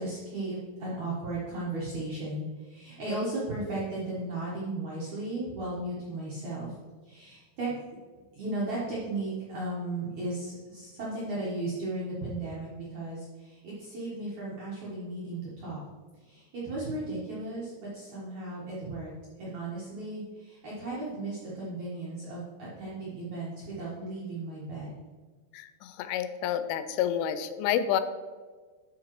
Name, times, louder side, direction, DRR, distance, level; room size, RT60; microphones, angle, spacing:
voice 1, 0.0-6.7 7.0-7.7 8.3-15.8 16.2-25.0, right 2 dB, 75° right, -8 dB, 1.7 m, -35 dB
voice 2, 25.5-28.0, left 10 dB, 85° left, 11 dB, 2.9 m, -29 dB
12.5 x 5.0 x 3.1 m, 1.4 s
omnidirectional pair, 5.6 m